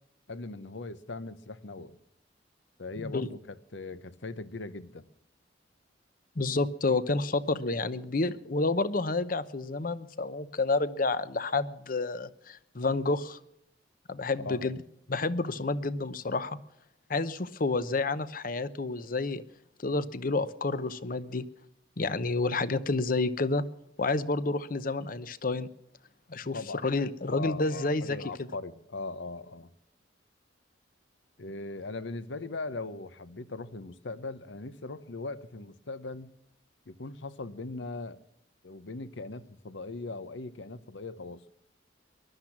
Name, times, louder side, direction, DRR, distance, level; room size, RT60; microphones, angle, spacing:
voice 1, 0.3-2.0 2.8-5.0 14.4-14.7 26.5-26.8 27.3-29.7 31.4-36.3 36.9-38.2 38.6-41.4, left 3 dB, 85° left, 1.0 m, -39 dB
voice 2, 3.0-3.3 6.4-13.4 14.1-14.8 15.1-16.6 17.1-19.4 19.8-21.5 22.0-23.6 24.0-25.7 26.3-28.5, left 3 dB, 50° left, 0.8 m, -29 dB
20.0 x 12.0 x 6.0 m
head